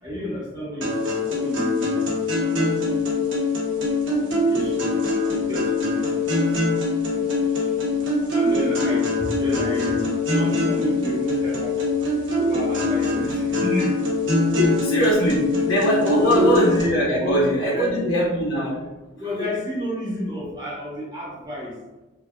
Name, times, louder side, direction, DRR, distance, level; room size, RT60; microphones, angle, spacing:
voice 1, 0.0-2.0 2.6-3.0 4.2-6.5 7.1-7.8 8.3-11.8 12.4-14.1 16.1-16.6 17.2-18.0 19.2-21.8, left 1 dB, 20° right, -6 dB, 1.4 m, -30 dB
sound 1, 0.8-16.8, left 2 dB, 60° right, 1.2 m, -23 dB
voice 2, 14.5-18.9, equal, 80° left, -7 dB, 1.0 m, -21 dB
4.8 x 2.7 x 2.8 m, 1.1 s
head